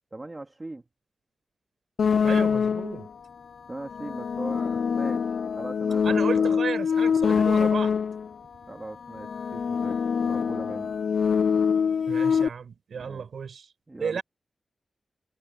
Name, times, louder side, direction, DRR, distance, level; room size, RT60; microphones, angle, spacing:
voice 1, 0.1-0.8 3.7-5.3 5.6-6.6 8.7-11.0 12.9-13.3 13.9-14.2, right 2 dB, 20° right, 2.8 m, -40 dB
sound 1, 2.0-3.1 3.8-8.3 9.1-12.5, left 6 dB, 75° left, 0.3 m, -24 dB
voice 2, 2.2-3.1 6.0-7.9 12.1-13.7 14.0-14.2, right 6 dB, 85° right, 5.9 m, -33 dB
wide cardioid pair, 155°, 0 cm